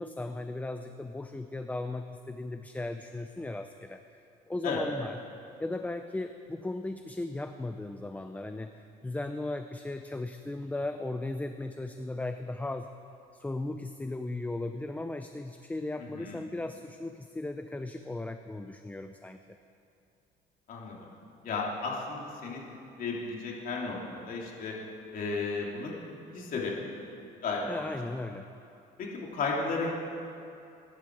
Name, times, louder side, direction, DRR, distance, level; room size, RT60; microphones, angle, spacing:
voice 1, 0.0-4.0 4.5-5.2 5.6-8.7 9.0-12.9 13.3-19.6 27.6-28.5, left 2 dB, 10° left, 8 dB, 0.6 m, -36 dB
voice 2, 16.0-16.3 20.7-21.0 21.4-22.6 23.0-24.0 24.3-24.7 25.1-25.9 26.3-26.7 27.4-27.9 29.0-29.9, left 4 dB, 55° left, -2 dB, 3.2 m, -33 dB
23.0 x 11.5 x 4.8 m, 2.7 s
cardioid pair, 110°, 17 cm